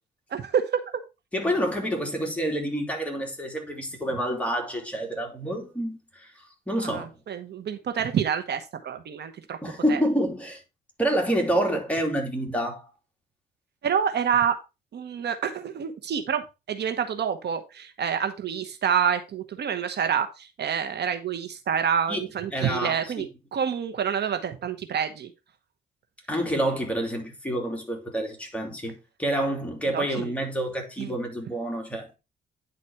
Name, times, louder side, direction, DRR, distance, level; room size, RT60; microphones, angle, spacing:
voice 1, 0.3-0.8 6.8-9.6 9.9-10.0 13.8-14.6 14.9-23.3 23.5-25.3 29.9-30.3 31.0-31.1, right 8 dB, 55° right, 1.0 m, -27 dB
voice 2, 1.3-6.3 6.7-7.1 9.6-10.6 11.0-12.9 22.1-22.2 22.5-23.3 26.3-32.1, equal, 5° left, 2.7 m, -28 dB
9.8 x 4.2 x 4.4 m
cardioid pair, 90°, 20 cm